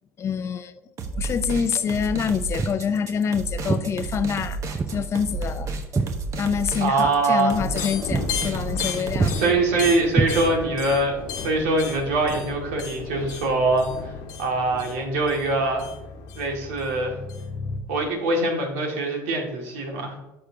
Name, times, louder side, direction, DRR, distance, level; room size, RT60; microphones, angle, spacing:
voice 1, 0.2-0.8 1.1-5.7 6.4-9.5, left 7 dB, 40° left, 12 dB, 0.6 m, -26 dB
sound 1, 1.0-9.3, right 3 dB, 45° right, 1.1 m, -32 dB
Walk footsteps, 2.6-2.9 3.7-3.9 4.7-5.0 5.3-6.7 7.0-7.2 7.6-7.8 8.1-8.3 8.6-8.9 9.2-9.4 10.1-10.8, right 4 dB, 20° right, 0.6 m, -26 dB
voice 2, 6.8-7.5 9.4-14.1 14.4-15.9 16.4-17.2 17.9-20.2, right 2 dB, 85° right, 1 dB, 2.0 m, -23 dB
sound 2, 7.5-17.8, left 5 dB, 70° left, 1.2 m, -34 dB
11.5 x 6.7 x 2.8 m, 0.99 s
supercardioid pair, 85°, 7 cm